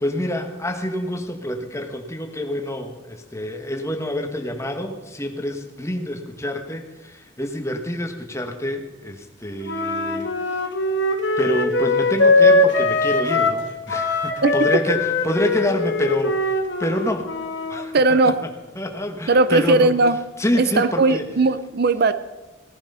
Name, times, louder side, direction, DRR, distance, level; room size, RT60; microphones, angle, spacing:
voice 1, 0.0-10.6 11.4-17.3 17.7-18.0 18.2-18.3 18.7-19.9 20.4-21.2, equal, 15° left, 4 dB, 1.4 m, -27 dB
Wind instrument woodwind instrument, 9.6-13.6 13.9-17.8, left 2 dB, 60° left, 1.7 m, -21 dB
voice 2, 17.9-18.4 19.3-20.2 20.6-22.1, right 3 dB, 55° right, 13 dB, 0.5 m, -18 dB
18.0 x 11.5 x 5.6 m, 1.2 s
head